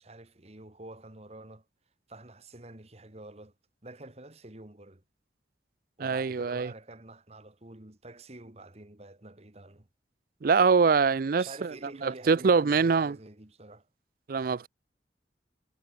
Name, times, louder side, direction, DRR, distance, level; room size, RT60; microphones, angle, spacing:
voice 1, 0.0-1.7 2.1-3.5 3.8-5.0 6.0-9.9 11.4-13.9, right 2 dB, 35° right, 1.8 m, -48 dB
voice 2, 6.0-6.7 10.4-11.7 12.0-13.2 14.3-14.7, right 5 dB, 50° right, 0.4 m, -24 dB
head